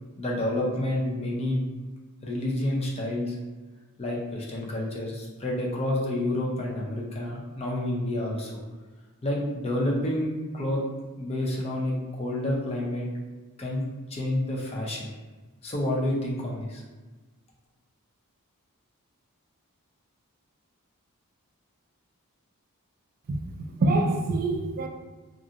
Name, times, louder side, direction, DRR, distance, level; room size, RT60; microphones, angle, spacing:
voice 1, 0.2-1.6 2.2-3.3 4.0-8.6 9.2-10.8 11.2-13.1 13.6-13.8 14.1-15.1 15.6-16.8, left 1 dB, 30° left, 0.5 m, -29 dB
voice 2, 23.3-24.9, right 2 dB, 40° right, 0.3 m, -26 dB
2.5 x 2.4 x 2.7 m
head